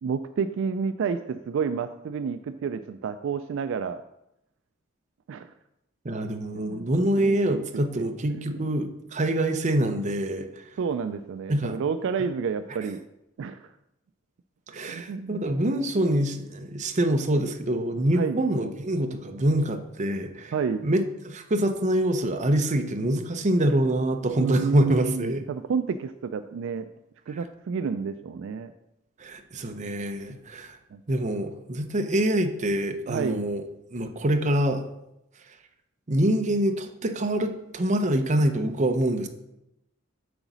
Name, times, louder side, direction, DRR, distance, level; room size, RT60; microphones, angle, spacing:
voice 1, 0.0-4.0 5.3-5.5 6.5-6.9 7.2-7.6 8.0-8.7 10.8-13.0 13.4-13.7 14.9-15.7 18.1-18.4 20.5-20.8 24.4-26.9 27.3-28.7 30.9-31.0 33.1-33.4, right 6 dB, 65° right, 10 dB, 0.3 m, -30 dB
voice 2, 6.0-10.7 11.5-11.8 14.7-20.5 20.8-25.4 29.2-30.8 31.1-33.6 33.9-34.9 36.1-39.3, right 1 dB, 35° right, 6 dB, 0.7 m, -25 dB
7.9 x 4.0 x 6.0 m, 0.87 s
head